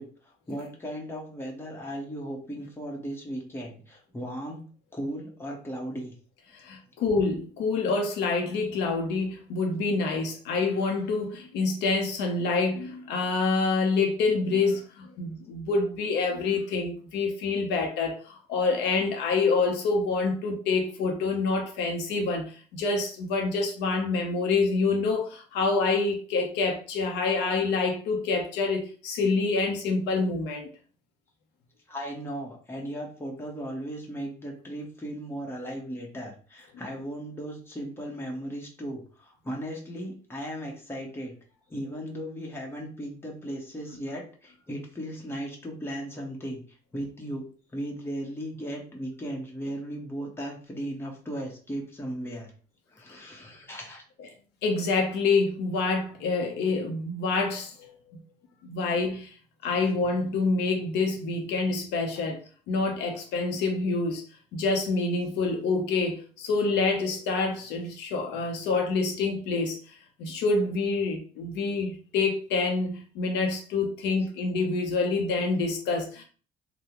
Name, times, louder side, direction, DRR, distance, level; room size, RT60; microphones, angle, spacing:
voice 1, 0.0-4.6 4.9-6.1 31.9-41.3 41.7-52.5 52.9-54.0, equal, 15° left, 1.1 m, -36 dB
voice 2, 6.5-30.7 54.6-58.2 58.6-59.3 59.6-62.4 62.7-64.2 64.5-69.8 70.2-76.2, left 3 dB, 85° left, 0.8 m, -27 dB
3.7 x 2.2 x 3.0 m
cardioid pair, 110°, 17 cm